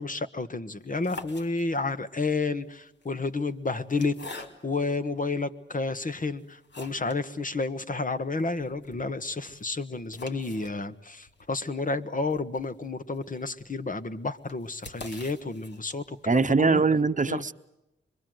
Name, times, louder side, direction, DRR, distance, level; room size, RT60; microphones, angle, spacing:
voice 1, 0.0-16.8 17.3-17.4, left 3 dB, 40° left, 10 dB, 1.5 m, -31 dB
sound 1, 0.8-2.0 2.9-4.9 5.5-5.6 6.1-7.3 7.6-7.7 7.9-8.0 8.4-16.3, left 2 dB, 60° left, 3.0 m, -46 dB
voice 2, 16.3-17.5, right 4 dB, 40° right, 11 dB, 1.0 m, -22 dB
26.0 x 22.0 x 7.9 m, 0.89 s
cardioid pair, 65°, 20 cm